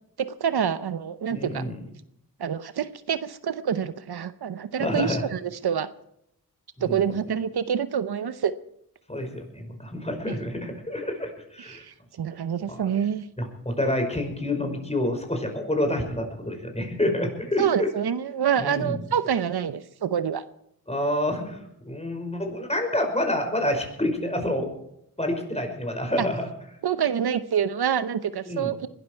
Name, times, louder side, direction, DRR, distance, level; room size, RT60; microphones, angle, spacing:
voice 1, 0.2-1.6 2.4-5.9 6.8-8.5 11.6-13.2 17.6-20.4 26.8-28.8, right 8 dB, 75° right, 13 dB, 0.9 m, -27 dB
voice 2, 1.3-1.8 4.8-5.3 6.8-7.1 9.1-11.9 12.6-12.9 13.4-17.9 18.6-19.0 20.9-24.7 25.2-26.5 28.5-28.7, left 1 dB, 15° left, 4 dB, 5.4 m, -28 dB
21.5 x 12.5 x 4.6 m, 0.74 s
cardioid pair, 50°, 38 cm